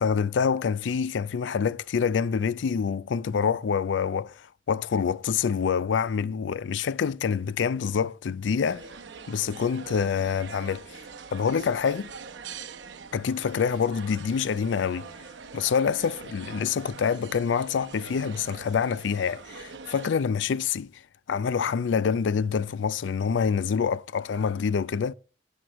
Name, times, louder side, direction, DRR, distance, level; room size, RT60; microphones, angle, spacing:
voice 1, 0.0-8.9 9.3-11.0 11.3-12.1 13.1-15.1 15.5-21.0 21.3-25.1, left 6 dB, 85° left, 0.4 m, -26 dB
sound 1, 8.7-20.1, right 5 dB, 80° right, 0.8 m, -43 dB
15.5 x 6.2 x 3.0 m
head